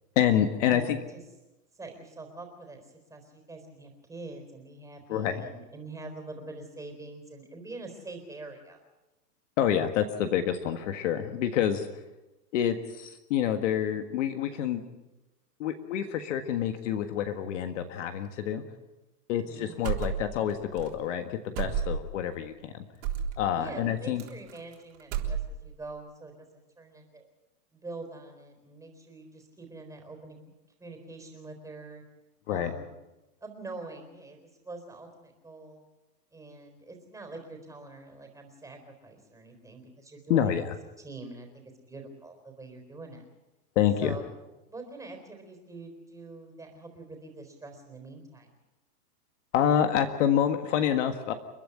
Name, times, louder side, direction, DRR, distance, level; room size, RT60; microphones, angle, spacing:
voice 1, 0.1-1.0 5.1-5.4 9.6-11.9 12.5-14.8 15.6-18.6 19.3-22.8 23.4-24.2 32.5-32.7 40.3-40.6 43.7-44.2 49.5-51.3, left 9 dB, 50° left, 7 dB, 1.7 m, -27 dB
voice 2, 0.7-1.2 1.7-8.8 19.4-19.9 23.5-27.3 27.7-30.4 30.8-32.0 32.5-33.0 33.4-35.8 36.3-40.5 41.0-43.2 44.0-44.2 44.7-48.5, right 3 dB, 5° right, 4 dB, 4.0 m, -44 dB
sound 1, 19.8-20.5 20.8-20.9 21.6-22.2 23.0-23.4 24.2-24.7 25.0-25.8, right 8 dB, 45° right, 3.8 m, -31 dB
30.0 x 10.5 x 9.9 m, 1.1 s
hypercardioid pair, 150°, 48 cm